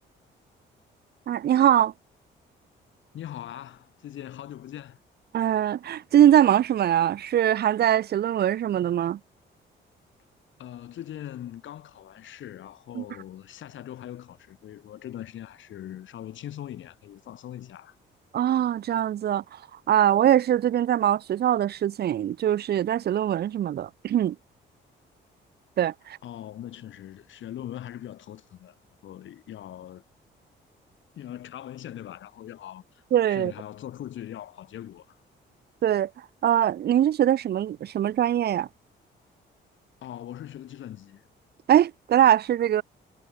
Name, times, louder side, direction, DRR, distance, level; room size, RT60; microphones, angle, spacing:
voice 1, 1.3-1.9 5.3-9.2 13.0-13.1 18.3-19.4 19.9-24.4 25.8-26.2 33.1-33.5 35.8-36.1 36.4-38.7 41.7-42.8, right 11 dB, 55° right, 0.7 m, -22 dB
voice 2, 3.1-5.0 10.6-18.0 26.2-30.0 31.1-33.0 33.3-35.2 40.0-41.2, left 11 dB, 75° left, 6.8 m, -41 dB
cardioid pair, 90°, 20 cm